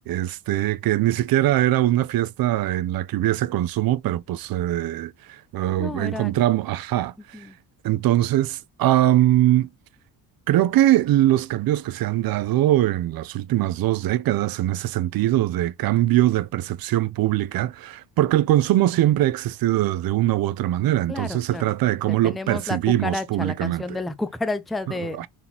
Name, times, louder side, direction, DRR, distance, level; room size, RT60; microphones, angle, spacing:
voice 1, 0.1-7.5 7.8-9.7 10.5-24.0 25.2-25.3, right 14 dB, 65° right, 0.5 m, -22 dB
voice 2, 5.7-6.4 7.3-7.6 7.9-8.0 21.1-21.7 22.1-25.3, left 2 dB, ahead, 0.4 m, -31 dB
4.0 x 3.6 x 2.8 m
cardioid pair, 120°, 39 cm